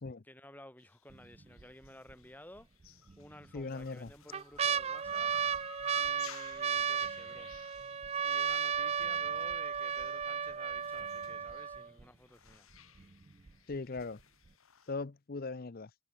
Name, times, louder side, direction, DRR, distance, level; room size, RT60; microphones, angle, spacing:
voice 1, 0.2-2.7 3.2-5.3 5.9-7.5 8.2-12.7, left 1 dB, 10° left, 4.7 m, -55 dB
sound 1, 0.8-14.9, left 7 dB, 80° left, 3.4 m, -57 dB
sound 2, 1.1-1.6 2.1-2.2 3.1-3.6 4.1-12.0 12.7-12.8 13.0-13.5 14.0-14.1, right 7 dB, 30° right, 0.4 m, -34 dB
voice 2, 3.5-4.1 13.7-14.2 14.9-15.9, left 3 dB, 45° left, 0.6 m, -39 dB
head